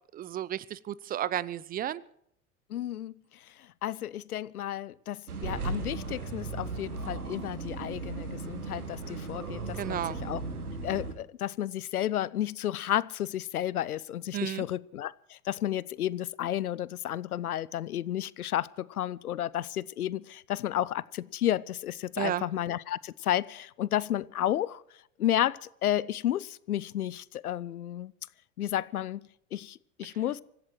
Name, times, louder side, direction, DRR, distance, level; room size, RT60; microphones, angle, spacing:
voice 1, 0.1-2.0 9.8-10.2 14.3-14.6 22.2-22.4, right 11 dB, 20° right, 0.5 m, -32 dB
voice 2, 2.7-3.1 3.8-10.4 10.8-24.8 25.2-28.1 28.6-29.2 29.5-30.4, left 12 dB, 80° left, 0.6 m, -32 dB
sound 1, 5.3-11.1, right 3 dB, 80° right, 2.2 m, -36 dB
25.5 x 15.5 x 3.1 m
figure-of-eight pair, 80°, 44 cm